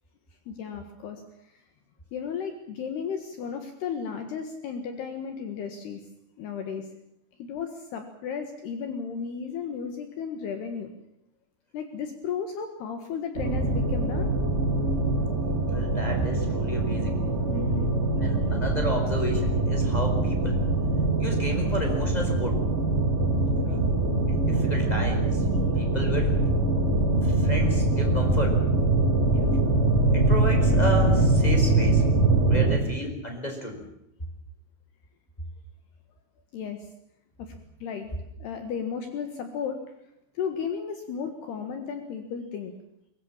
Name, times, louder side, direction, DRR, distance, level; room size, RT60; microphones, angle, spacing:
voice 1, 0.5-1.2 1.5-1.6 2.1-6.0 6.4-6.9 7.4-10.9 11.7-14.3 17.5-17.9 23.7-23.8 29.2-29.5 32.7-32.9 36.5-36.9 37.4-37.5 37.8-38.1 38.4-39.8 40.4-42.7, left 6 dB, 65° left, 6 dB, 3.4 m, -34 dB
sound 1, 13.3-32.8, right 2 dB, 20° right, 2.2 m, -23 dB
voice 2, 15.6-17.2 18.2-20.6 21.2-22.7 23.6-24.0 24.3-25.4 25.7-26.4 27.2-28.8 30.1-32.0 32.4-33.8, equal, 10° left, 3 dB, 4.2 m, -32 dB
23.0 x 20.5 x 7.3 m, 0.80 s
omnidirectional pair, 5.6 m